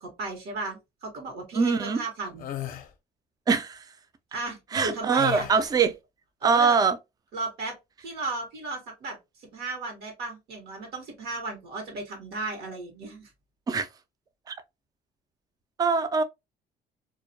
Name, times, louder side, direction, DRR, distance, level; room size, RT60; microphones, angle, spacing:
voice 1, 0.0-2.5 4.3-5.5 6.4-6.8 7.3-9.2 9.5-13.3, right 2 dB, 75° right, 1.0 m, -35 dB
voice 2, 1.5-2.0 3.5-3.8 4.7-5.9 6.4-7.0 13.7-13.9 14.5-14.6 15.8-16.2, right 5 dB, 25° right, 0.3 m, -23 dB
sound 1, 2.4-2.9 5.2-5.9, left 13 dB, 55° left, 0.5 m, -36 dB
2.3 x 2.1 x 2.6 m
cardioid pair, 110°, 17 cm